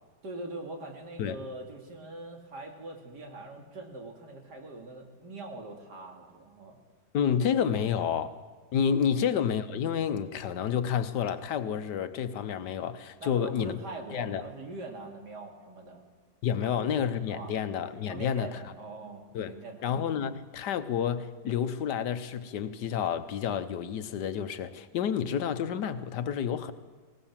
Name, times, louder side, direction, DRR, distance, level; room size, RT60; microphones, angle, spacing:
voice 1, 0.2-6.8 9.1-9.2 13.2-16.0 16.6-16.9 17.3-17.5 18.1-20.0, right 2 dB, 70° right, 2.9 m, -42 dB
voice 2, 7.1-8.3 8.7-13.8 14.1-14.4 16.4-18.6 19.3-19.5 19.8-26.7, left 8 dB, 80° left, 1.5 m, -29 dB
19.5 x 18.5 x 7.4 m
omnidirectional pair, 1.8 m